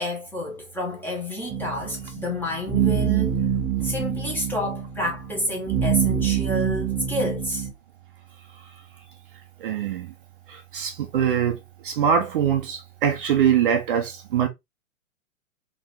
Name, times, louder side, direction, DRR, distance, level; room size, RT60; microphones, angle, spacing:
voice 1, 0.0-3.4 3.8-7.7, left 1 dB, 5° left, 1.3 m, -29 dB
sound 1, 1.5-7.7, right 8 dB, 15° right, 0.9 m, -25 dB
voice 2, 9.6-10.1 10.5-11.6 11.8-14.5, right 8 dB, 40° right, 0.9 m, -23 dB
4.0 x 3.8 x 3.1 m
figure-of-eight pair, 120°, 41 cm